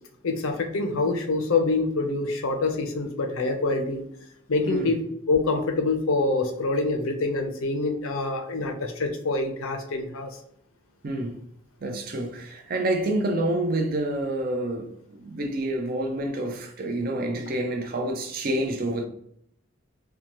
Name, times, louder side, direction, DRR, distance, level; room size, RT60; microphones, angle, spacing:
voice 1, 0.2-4.0 4.5-5.0 5.3-10.3, left 3 dB, 85° left, 0.6 m, -26 dB
voice 2, 11.0-11.4 11.8-19.0, right 1 dB, 45° right, 0.4 m, -28 dB
2.8 x 2.2 x 2.9 m
head